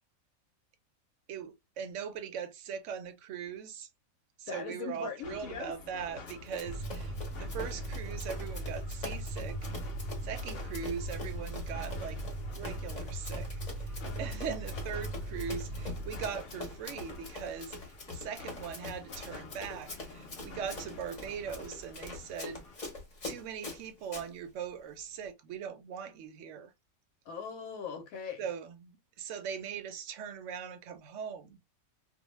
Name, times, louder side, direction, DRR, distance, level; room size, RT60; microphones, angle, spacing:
voice 1, 1.3-3.9 4.4-9.7 10.2-12.2 12.5-22.6 23.2-26.7 28.4-31.6, right 7 dB, 70° right, 0.8 m, -40 dB
voice 2, 4.5-5.7 14.0-14.2 27.3-28.4, left 6 dB, 75° left, 1.0 m, -40 dB
sound 1, 5.2-22.8, left 3 dB, 60° left, 0.6 m, -50 dB
Run, 6.3-24.3, left 2 dB, 35° left, 0.9 m, -44 dB
sound 2, 6.7-16.3, right 1 dB, 85° right, 1.2 m, -39 dB
2.5 x 2.0 x 3.0 m
omnidirectional pair, 1.5 m